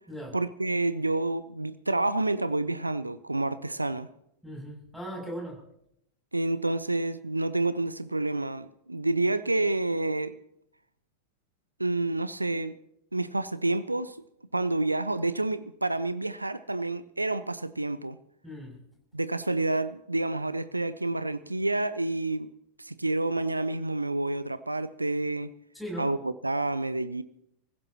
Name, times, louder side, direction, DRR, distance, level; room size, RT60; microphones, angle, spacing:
voice 1, 0.3-4.1 6.3-10.3 11.8-12.8 13.1-14.2 14.5-18.2 19.1-22.5 22.8-25.5 26.0-27.2, right 2 dB, 85° right, 15 dB, 0.5 m, -29 dB
voice 2, 4.4-5.6 18.4-18.8 25.7-26.1, equal, ahead, -2 dB, 7.3 m, -38 dB
29.0 x 15.5 x 3.0 m, 0.76 s
figure-of-eight pair, 90°, 0 cm